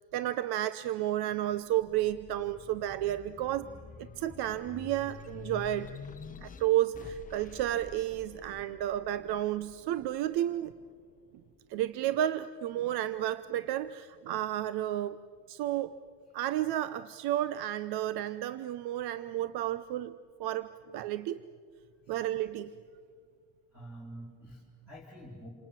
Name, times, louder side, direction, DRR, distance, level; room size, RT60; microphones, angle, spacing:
voice 1, 0.1-3.7 4.0-5.9 6.4-10.7 11.7-15.2 15.5-16.0 16.3-20.1 20.4-21.4 22.1-22.7, right 13 dB, 70° right, 15 dB, 0.8 m, -32 dB
sound 1, 1.4-12.2 12.7-13.8, left 6 dB, 20° left, 0.7 m, -49 dB
voice 2, 23.7-25.5, right 1 dB, 5° right, -5 dB, 3.8 m, -47 dB
28.5 x 27.5 x 7.5 m, 2.1 s
cardioid pair, 175°, 40 cm